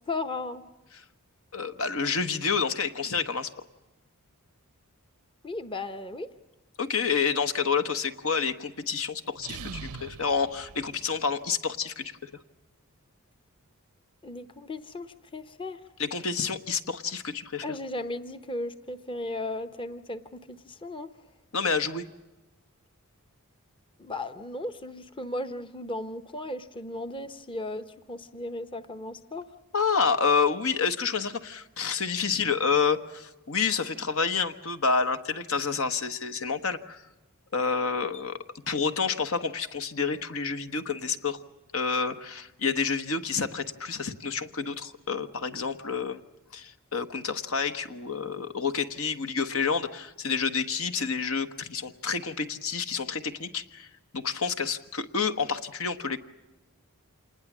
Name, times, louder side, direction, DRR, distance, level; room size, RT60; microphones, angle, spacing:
voice 1, 0.1-0.6 5.4-6.3 14.2-15.8 17.6-21.1 24.0-29.5, left 2 dB, 25° left, 9 dB, 0.9 m, -36 dB
voice 2, 1.5-3.5 6.8-12.3 16.0-17.6 21.5-22.0 29.7-37.0 37.5-38.4 38.7-41.4 41.7-46.2 46.5-53.9 54.1-56.2, left 5 dB, 65° left, 9 dB, 1.2 m, -29 dB
sound 1, 9.3-11.5, right 5 dB, 85° right, 0.8 m, -42 dB
27.0 x 20.0 x 7.4 m, 1.0 s
head